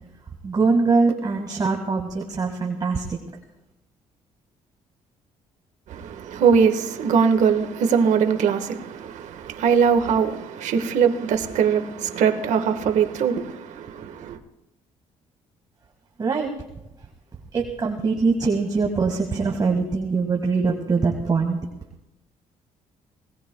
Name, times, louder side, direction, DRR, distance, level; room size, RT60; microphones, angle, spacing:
voice 1, 0.4-3.2 16.2-16.5 17.5-21.6, right 4 dB, 30° right, 1.8 m, -22 dB
voice 2, 5.9-14.4, right 6 dB, 75° right, 1.5 m, -21 dB
27.0 x 18.5 x 2.3 m
cardioid pair, 105°, 13 cm